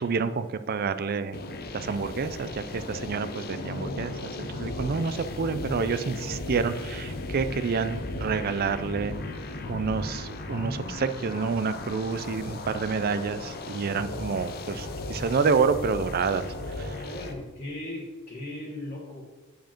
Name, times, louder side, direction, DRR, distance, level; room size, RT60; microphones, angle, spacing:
voice 1, 0.0-1.4 1.7-9.2 9.7-16.5 16.8-17.1, right 5 dB, 45° right, 12 dB, 0.4 m, -28 dB
sound 1, 1.3-17.3, left 2 dB, 45° left, 0.8 m, -36 dB
voice 2, 17.0-19.2, left 1 dB, 25° left, -5 dB, 1.4 m, -37 dB
9.2 x 5.1 x 4.5 m, 1.2 s
head